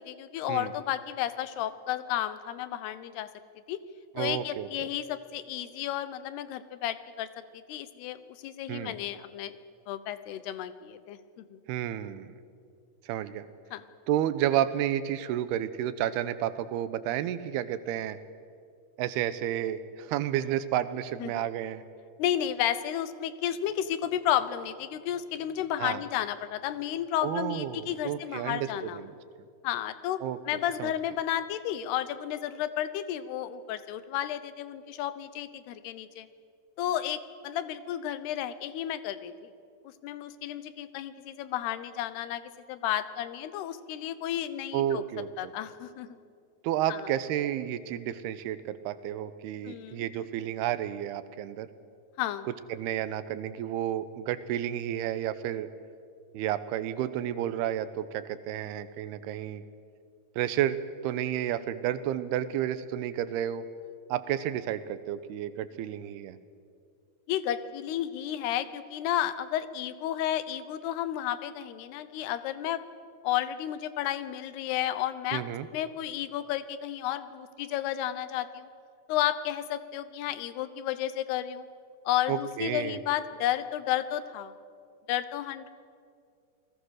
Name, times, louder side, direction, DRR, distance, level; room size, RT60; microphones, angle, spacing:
voice 1, 0.0-3.3 3.7-3.8 4.2-7.3 7.5-9.5 9.9-11.6 13.7-13.8 21.2-21.5 22.2-29.0 29.6-36.3 36.8-39.5 39.8-42.4 42.7-45.0 45.4-46.2 46.9-47.0 49.6-50.1 52.2-52.5 67.3-72.8 73.2-75.4 75.7-78.7 79.1-81.7 82.1-84.5 85.1-85.7, left 11 dB, 90° left, 13 dB, 3.0 m, -32 dB
voice 2, 4.2-4.9 8.7-9.0 11.7-12.4 13.1-13.4 14.1-18.2 19.0-21.8 25.8-26.0 27.2-29.1 30.2-30.4 30.8-30.9 44.7-45.5 46.6-51.7 52.7-55.7 56.3-59.6 60.4-63.6 64.1-66.4 75.3-75.7 82.3-83.0, right 11 dB, 85° right, 13 dB, 2.9 m, -31 dB
28.5 x 19.0 x 6.5 m, 2.3 s
omnidirectional pair, 4.5 m